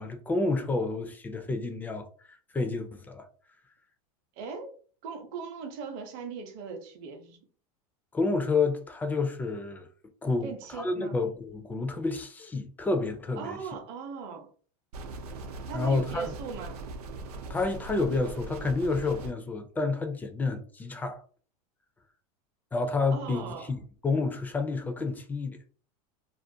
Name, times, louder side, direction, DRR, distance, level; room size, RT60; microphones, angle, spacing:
voice 1, 0.0-3.3 8.1-9.9 10.2-13.6 15.7-16.3 17.5-21.2 22.7-25.6, left 3 dB, 10° left, 0.3 m, -29 dB
voice 2, 4.4-4.7 5.0-7.4 10.4-11.2 13.4-14.5 15.7-16.8 23.1-23.7, right 5 dB, 50° right, 0.7 m, -39 dB
sound 1, 14.9-19.3, right 3 dB, 90° right, 0.6 m, -40 dB
2.4 x 2.1 x 2.6 m
supercardioid pair, 135°, 19 cm